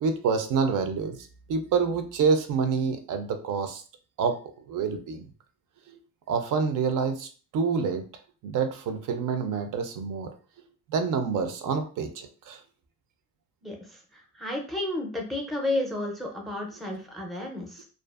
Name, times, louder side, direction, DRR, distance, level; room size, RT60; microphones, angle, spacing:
voice 1, 0.0-3.8 4.2-4.4 4.7-5.2 6.3-8.0 8.4-10.3 10.9-12.6, right 5 dB, 65° right, 7 dB, 0.5 m, -27 dB
voice 2, 13.6-17.8, left 1 dB, ahead, 1 dB, 0.4 m, -32 dB
2.5 x 2.3 x 2.3 m, 0.38 s
cardioid pair, 145°, 34 cm